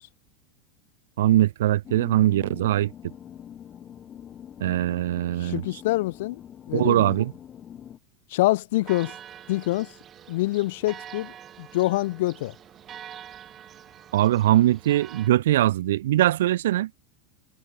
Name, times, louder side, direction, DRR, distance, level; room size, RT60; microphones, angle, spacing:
voice 1, 1.2-2.9 4.6-5.6 6.7-7.3 14.1-16.9, right 14 dB, 85° right, 0.4 m, -21 dB
sound 1, 1.8-8.0, left 9 dB, 20° left, 0.7 m, -44 dB
voice 2, 5.4-6.4 6.7-7.1 8.3-9.1 9.5-9.9 10.3-12.5, left 18 dB, 60° left, 0.8 m, -26 dB
Church bell, 8.8-15.3, right 10 dB, 20° right, 4.6 m, -45 dB
supercardioid pair, 175°, 0 cm